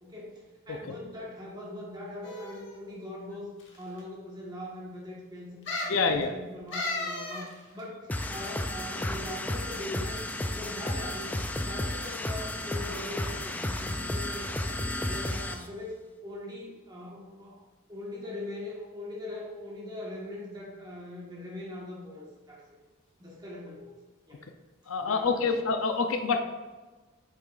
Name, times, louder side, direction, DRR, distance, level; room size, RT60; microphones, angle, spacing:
voice 1, 0.0-5.6 5.9-10.3 10.5-22.6 23.2-24.0 24.3-24.4 25.0-25.5, left 1 dB, 20° right, -4 dB, 1.4 m, -41 dB
sound 1, 2.2-2.8 3.6-3.7 4.0-4.1 5.7-6.0 6.7-7.5 7.8-7.9, left 2 dB, 60° left, 1.4 m, -34 dB
voice 2, 5.9-6.3 24.9-26.4, left 4 dB, 80° left, 6 dB, 0.6 m, -26 dB
sound 2, 8.1-15.7, left 1 dB, 10° left, 0.3 m, -33 dB
8.5 x 6.7 x 2.5 m, 1.3 s
head